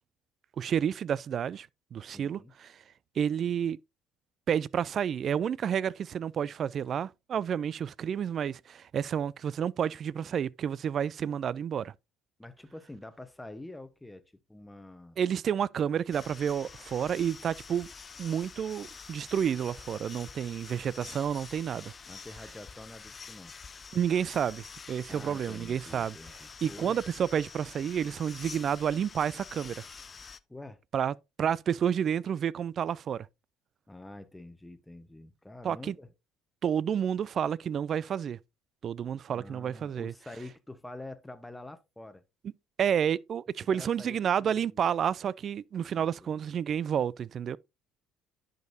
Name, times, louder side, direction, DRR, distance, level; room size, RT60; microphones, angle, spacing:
voice 1, 0.6-2.8 3.2-3.8 4.5-11.9 15.2-17.9 18.2-21.9 23.9-26.1 26.6-29.9 30.9-33.3 35.6-35.9 36.6-38.4 38.8-40.1 42.8-47.6, right 8 dB, 50° right, 0.3 m, -30 dB
voice 2, 2.1-2.5 12.4-14.2 14.5-15.2 22.1-23.5 25.1-27.0 30.5-30.8 33.9-36.1 39.3-42.2 43.6-44.8 45.9-46.5, left 2 dB, 10° left, 0.9 m, -47 dB
sound 1, 16.1-30.4, left 5 dB, 35° left, 0.5 m, -47 dB
10.5 x 5.2 x 2.6 m
supercardioid pair, 75°, 0 cm